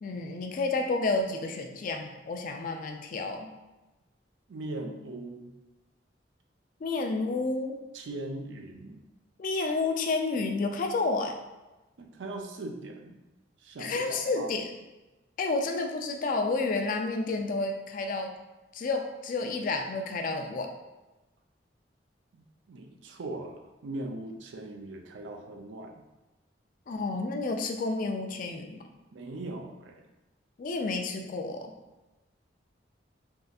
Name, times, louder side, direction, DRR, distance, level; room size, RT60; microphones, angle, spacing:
voice 1, 0.0-3.5 6.8-7.8 9.4-11.4 13.8-14.7 15.4-18.3 18.7-20.7 26.9-28.8 30.6-31.7, left 3 dB, 45° left, 4 dB, 0.3 m, -30 dB
voice 2, 4.5-5.5 7.9-9.0 12.0-13.2 13.6-14.5 22.7-26.0 29.1-30.0, right 2 dB, 80° right, 4 dB, 0.4 m, -39 dB
3.6 x 2.6 x 2.3 m, 1.1 s
head